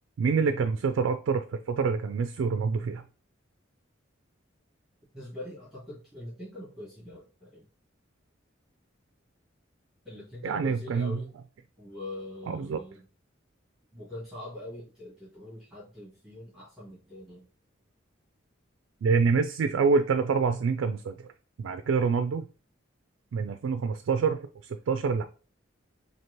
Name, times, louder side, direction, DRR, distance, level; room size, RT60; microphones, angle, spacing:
voice 1, 0.2-3.0 10.4-11.2 12.5-12.8 19.0-21.3 21.6-22.5 23.3-25.2, right 5 dB, 80° right, 8 dB, 0.3 m, -26 dB
voice 2, 5.1-7.7 10.0-11.3 11.8-13.0 13.9-17.4, left 1 dB, ahead, -10 dB, 1.8 m, -43 dB
4.4 x 2.8 x 3.0 m, 0.36 s
head